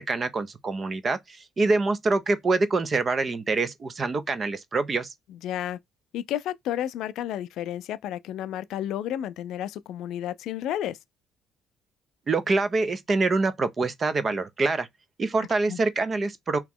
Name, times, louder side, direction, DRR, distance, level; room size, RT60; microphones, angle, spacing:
voice 1, 0.0-5.1 12.3-14.9 15.2-16.6, right 3 dB, 25° right, 0.5 m, -25 dB
voice 2, 5.3-5.8 6.1-11.0 15.4-15.8, left 11 dB, 70° left, 0.3 m, -32 dB
3.0 x 2.9 x 3.5 m
cardioid pair, 145°, 0 cm